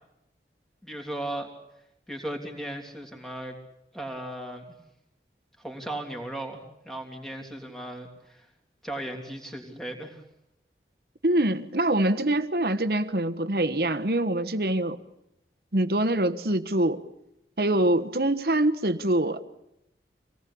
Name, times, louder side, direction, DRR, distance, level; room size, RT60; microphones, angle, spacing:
voice 1, 0.8-1.5 2.1-3.6 3.9-4.6 5.6-8.5 8.8-10.2, right 1 dB, ahead, 3.2 m, -36 dB
voice 2, 11.2-15.0 15.7-17.0 17.6-19.4, right 1 dB, 55° right, 1.3 m, -24 dB
26.0 x 18.5 x 8.6 m
head